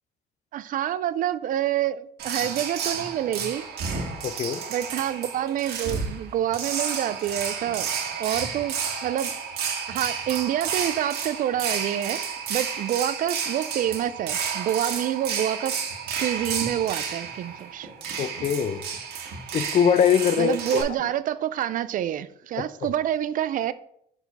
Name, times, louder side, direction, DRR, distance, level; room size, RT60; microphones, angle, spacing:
voice 1, 0.5-3.7 4.7-7.9 8.2-9.3 9.9-12.2 12.5-15.8 16.2-17.9 20.4-23.7, right 11 dB, 55° right, 0.4 m, -27 dB
sound 1, 2.2-20.8, right 6 dB, 70° right, 1.5 m, -31 dB
voice 2, 4.2-4.6 18.2-18.8 19.5-20.8 22.6-22.7, left 8 dB, 40° left, 0.4 m, -22 dB
6.8 x 4.1 x 4.1 m
cardioid pair, 110°, 17 cm